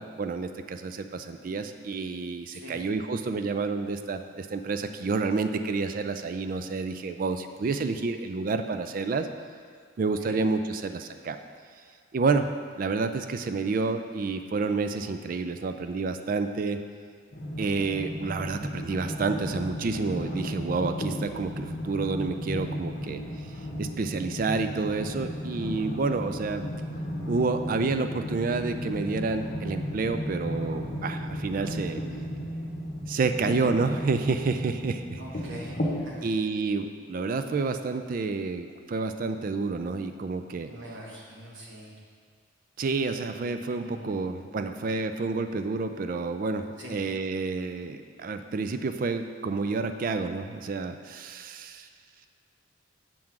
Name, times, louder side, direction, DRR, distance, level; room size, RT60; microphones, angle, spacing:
voice 1, 0.0-9.3 10.0-11.4 12.1-12.5 12.8-16.8 17.6-23.2 23.8-26.7 27.3-32.0 33.1-35.2 36.2-40.7 42.8-51.9, right 4 dB, 40° right, 8 dB, 0.3 m, -29 dB
voice 2, 2.5-2.8 10.2-10.4 35.2-36.3 40.7-42.0 43.7-44.1 46.8-47.0, right 1 dB, 60° right, -3 dB, 1.2 m, -43 dB
sound 1, 17.3-36.0, equal, 45° left, 0.8 m, -35 dB
7.5 x 3.7 x 5.9 m, 2.1 s
head